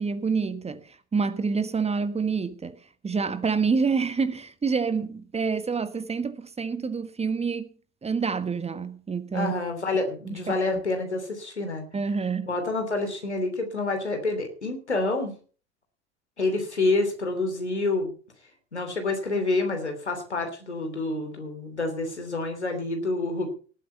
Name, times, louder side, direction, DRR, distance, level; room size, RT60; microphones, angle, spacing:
voice 1, 0.0-7.7 8.0-9.5 10.2-10.6 11.9-12.5, right 5 dB, 20° right, 1.4 m, -27 dB
voice 2, 9.3-11.8 12.4-15.3 16.4-18.1 18.7-23.5, left 2 dB, 85° left, 3.0 m, -28 dB
18.0 x 8.5 x 5.6 m
figure-of-eight pair, 65°, 33 cm